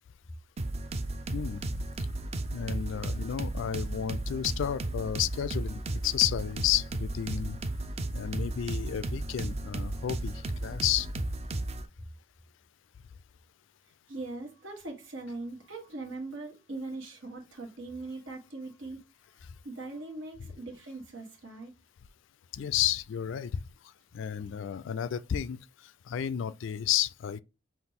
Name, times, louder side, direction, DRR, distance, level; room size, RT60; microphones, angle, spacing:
sound 1, 0.6-11.9, right 2 dB, 30° right, 0.4 m, -34 dB
voice 1, 1.3-1.6 2.5-7.6 8.1-11.1 20.4-20.5 22.5-23.6 24.1-25.6 26.1-27.4, left 10 dB, 70° left, 0.3 m, -31 dB
voice 2, 14.1-19.0 19.6-21.7, right 2 dB, 80° right, 1.4 m, -40 dB
5.8 x 2.4 x 3.6 m
head